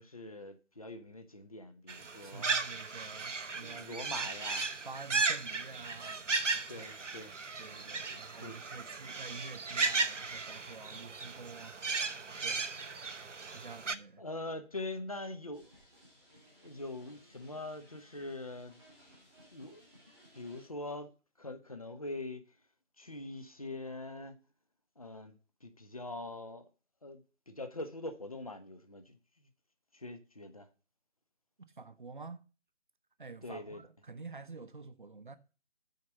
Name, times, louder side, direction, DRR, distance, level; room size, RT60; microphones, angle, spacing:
voice 1, 0.0-2.5 3.5-4.7 6.7-7.4 8.1-8.6 14.2-15.7 16.6-18.8 19.5-19.9 20.3-21.1 21.4-22.6 23.0-24.4 25.0-26.7 27.0-29.5 29.9-30.7 33.4-33.8, left 2 dB, 30° left, 0.6 m, -43 dB
sound 1, 1.9-14.0, right 4 dB, 80° right, 0.8 m, -36 dB
voice 2, 2.2-4.0 4.8-6.9 7.6-12.7 13.5-14.2 31.8-32.4 33.2-35.4, right 4 dB, 40° right, 0.7 m, -49 dB
sound 2, 15.5-20.7, equal, 5° left, 1.1 m, -61 dB
6.5 x 5.1 x 6.8 m
figure-of-eight pair, 155°, 36 cm